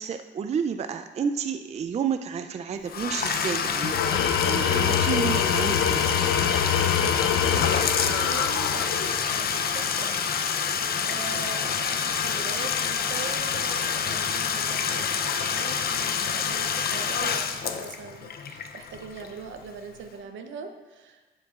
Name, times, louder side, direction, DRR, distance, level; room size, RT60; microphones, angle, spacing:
voice 1, 0.0-6.1, right 7 dB, 35° right, 8 dB, 0.4 m, -30 dB
Bathtub (filling or washing), 2.8-19.6, left 7 dB, 50° left, 0.6 m, -27 dB
Tools, 3.8-9.2, left 8 dB, 85° left, 0.7 m, -25 dB
voice 2, 7.1-10.4 11.0-21.3, right 6 dB, 75° right, 7 dB, 0.8 m, -41 dB
11.0 x 7.5 x 2.5 m, 1.3 s
cardioid pair, 90°, 20 cm